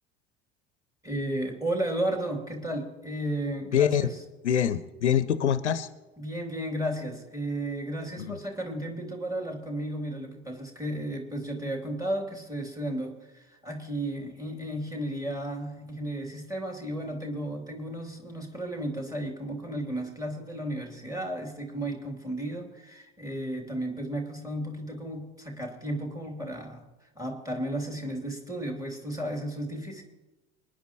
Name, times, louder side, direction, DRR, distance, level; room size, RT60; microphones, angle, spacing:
voice 1, 1.0-4.2 6.2-26.9 27.1-30.0, right 1 dB, 10° right, 2 dB, 3.2 m, -33 dB
voice 2, 3.7-4.1 4.4-5.9 8.2-8.4, left 9 dB, 75° left, 16 dB, 0.7 m, -25 dB
26.5 x 10.5 x 3.1 m, 1.1 s
figure-of-eight pair, 65°, 34 cm